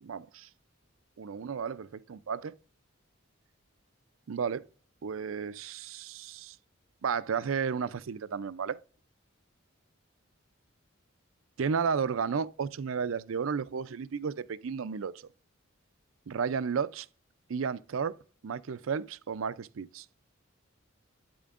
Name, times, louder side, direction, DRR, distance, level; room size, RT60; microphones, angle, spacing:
voice 1, 0.0-0.5 1.2-2.5 4.3-4.6 5.0-6.6 7.0-8.8 11.6-15.3 16.3-17.1 17.5-18.1 18.4-20.1, right 6 dB, 80° right, 0.5 m, -33 dB
9.2 x 8.7 x 2.5 m
head